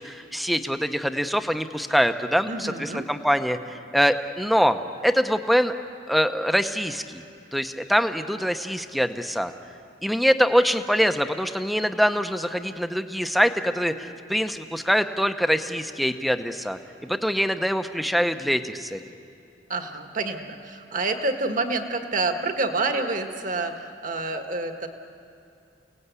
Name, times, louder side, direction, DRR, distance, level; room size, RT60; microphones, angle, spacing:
voice 1, 0.0-5.7 6.1-7.2 7.5-9.5 10.0-19.0, equal, ahead, 8 dB, 0.8 m, -24 dB
voice 2, 2.5-3.1 19.7-24.9, right 3 dB, 50° right, 5 dB, 1.6 m, -28 dB
29.5 x 18.0 x 8.3 m, 2.6 s
head